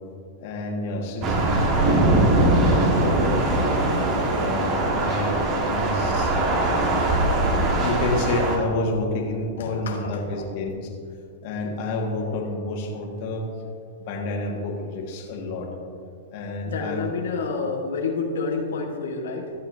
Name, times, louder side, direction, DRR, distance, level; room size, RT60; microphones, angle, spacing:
voice 1, 0.4-3.8 4.4-5.4 5.7-6.4 7.8-10.9 11.4-13.5 14.0-15.7 16.3-17.1, left 2 dB, 50° left, 0 dB, 1.8 m, -29 dB
Thunder / Rain, 1.2-8.6, right 2 dB, 35° right, 1.5 m, -21 dB
voice 2, 9.6-10.2 15.1-15.3 16.6-19.5, left 4 dB, 80° left, 1 dB, 1.2 m, -29 dB
14.0 x 7.2 x 2.7 m, 2.3 s
hypercardioid pair, 120°, 0 cm